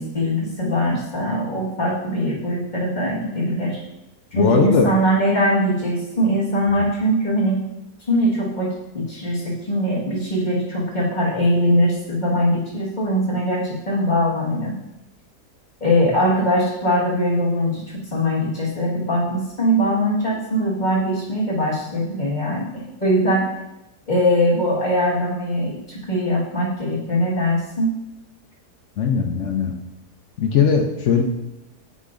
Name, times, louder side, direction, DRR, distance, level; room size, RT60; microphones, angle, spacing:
voice 1, 0.0-3.8 4.3-7.6 8.1-14.8 15.8-22.7 23.0-23.5 24.1-27.9, equal, 30° left, -6 dB, 1.6 m, -21 dB
voice 2, 4.3-4.9 29.0-29.7 30.4-31.2, left 6 dB, 65° left, 3 dB, 0.8 m, -19 dB
8.3 x 5.1 x 2.5 m, 0.92 s
omnidirectional pair, 1.7 m